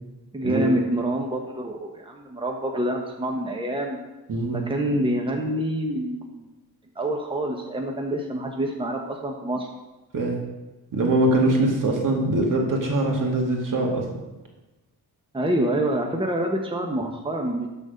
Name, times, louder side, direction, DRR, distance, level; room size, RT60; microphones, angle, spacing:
voice 1, 0.3-4.0 4.5-6.5 6.9-9.7 15.3-17.7, right 1 dB, 15° right, 1 dB, 1.3 m, -26 dB
voice 2, 4.3-4.6 10.1-10.4 10.9-14.1, right 2 dB, 55° right, 0 dB, 2.3 m, -22 dB
12.5 x 4.3 x 5.3 m, 1.1 s
cardioid pair, 70°, 38 cm